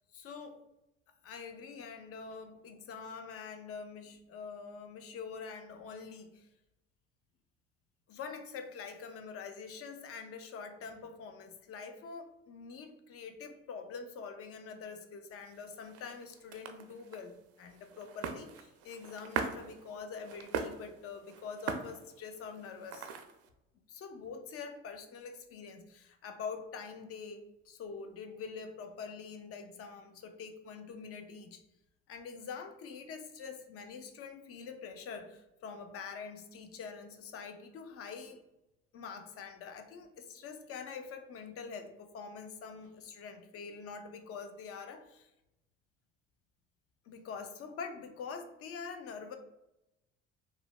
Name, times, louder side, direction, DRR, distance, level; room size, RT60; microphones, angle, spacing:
voice 1, 0.1-0.6 1.2-6.5 8.1-23.1 23.9-31.6 32.1-38.4 38.9-45.3 47.1-49.4, left 5 dB, 45° left, 7 dB, 0.5 m, -45 dB
sound 1, 15.4-23.5, right 6 dB, 50° right, 0.4 m, -42 dB
3.1 x 2.1 x 2.3 m, 0.91 s
supercardioid pair, 75°, 31 cm